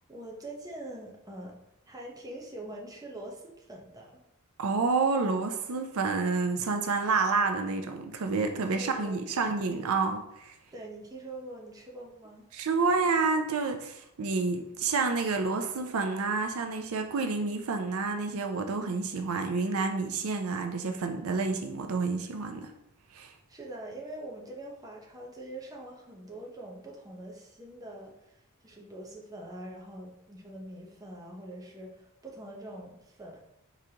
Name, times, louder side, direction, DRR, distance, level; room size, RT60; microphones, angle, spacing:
voice 1, 0.1-1.5 1.9-4.2 8.7-9.2 10.7-12.5 23.5-28.3 28.6-33.4, right 1 dB, 15° right, -1 dB, 0.8 m, -44 dB
voice 2, 4.6-10.5 12.5-22.7 23.1-23.3, right 4 dB, 75° right, 5 dB, 0.5 m, -29 dB
4.8 x 3.8 x 2.8 m, 0.82 s
head